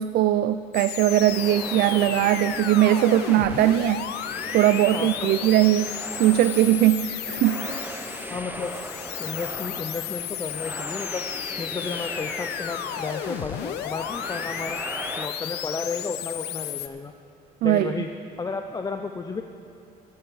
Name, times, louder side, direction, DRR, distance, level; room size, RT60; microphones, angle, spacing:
voice 1, 0.0-4.1 4.5-7.8 17.6-17.9, right 13 dB, 65° right, 12 dB, 0.4 m, -20 dB
sound 1, 0.7-16.9, left 11 dB, 80° left, 0.6 m, -33 dB
sound 2, 1.1-15.3, right 2 dB, 10° right, 0.8 m, -38 dB
voice 2, 8.3-8.7 9.2-11.2 11.6-14.8 15.2-17.1 17.6-18.1 18.4-19.4, left 4 dB, 20° left, 6 dB, 0.5 m, -32 dB
13.0 x 10.5 x 5.6 m, 2.5 s
cardioid pair, 110°, 17 cm